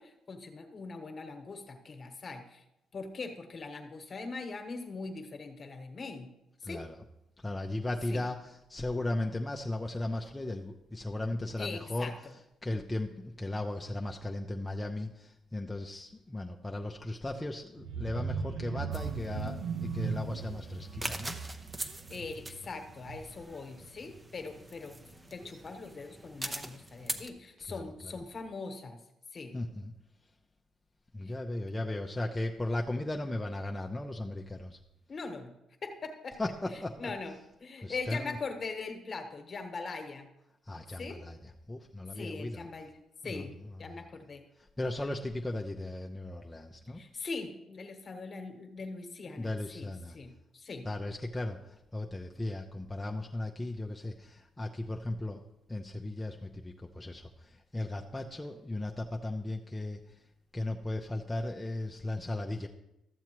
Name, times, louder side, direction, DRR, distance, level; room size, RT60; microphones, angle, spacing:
voice 1, 0.0-2.6 2.9-6.3 6.6-6.8 8.1-8.3 11.6-12.1 22.1-25.0 25.3-29.0 29.3-29.6 31.2-31.3 35.1-35.5 35.8-36.4 37.0-37.3 37.6-40.3 41.0-41.2 42.1-42.9 43.2-43.5 43.8-44.4 46.9-50.9, left 4 dB, 40° left, 6 dB, 1.3 m, -41 dB
voice 2, 6.6-7.0 7.4-12.1 12.6-21.4 27.6-28.2 29.5-29.9 31.1-34.8 36.4-37.1 37.8-38.4 40.6-42.7 43.2-43.4 43.9-44.1 44.6-47.0 49.4-50.2 50.8-55.4 55.7-60.2 60.5-62.7, left 2 dB, 15° left, 1 dB, 0.6 m, -36 dB
sound 1, 17.8-23.5 23.9-24.2 24.5-24.6, right 5 dB, 90° right, 0.6 m, -38 dB
sound 2, 18.9-27.3, right 1 dB, 20° right, 0.8 m, -43 dB
13.0 x 7.1 x 3.0 m, 0.86 s
cardioid pair, 90°, 0 cm